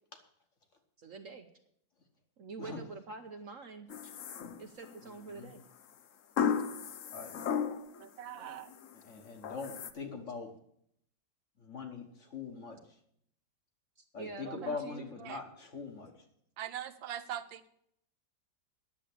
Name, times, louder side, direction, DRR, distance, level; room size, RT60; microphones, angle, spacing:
voice 1, 1.0-1.5 2.4-4.1 4.6-5.6 8.3-8.7 14.0-15.1, right 4 dB, 55° right, 6 dB, 1.0 m, -46 dB
sound 1, 3.9-5.0 6.4-8.1 8.5-8.9 9.4-9.9, left 7 dB, 60° left, 0.9 m, -34 dB
voice 2, 8.0-8.7 14.4-14.8 15.2-15.4 16.6-17.7, right 10 dB, 85° right, 10 dB, 1.6 m, -42 dB
voice 3, 9.0-10.5 11.6-12.8 14.1-16.1, left 5 dB, 45° left, 4 dB, 1.6 m, -42 dB
10.5 x 7.4 x 8.4 m, 0.69 s
omnidirectional pair, 2.0 m